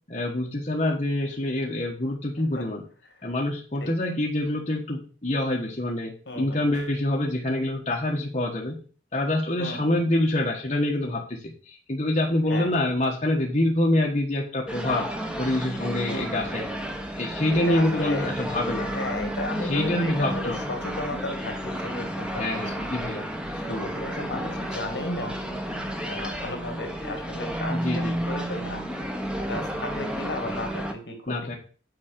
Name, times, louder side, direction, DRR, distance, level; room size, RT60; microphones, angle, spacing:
voice 1, 0.1-2.8 3.2-8.8 9.1-15.1 15.4-16.6 17.2-18.9 19.6-20.6 22.4-23.3 23.7-23.8 27.7-28.2 31.3-31.6, left 1 dB, 40° left, -1 dB, 1.4 m, -26 dB
voice 2, 2.4-2.7 3.8-3.9 6.3-6.6 9.6-9.9 12.5-12.7 16.1-16.5 17.5-18.3 18.8-22.6 23.5-25.4 26.0-28.8 29.4-31.5, left 1 dB, 65° left, 5 dB, 2.2 m, -34 dB
sound 1, 14.7-30.9, equal, 5° right, 1.1 m, -32 dB
8.6 x 4.9 x 6.7 m, 0.39 s
head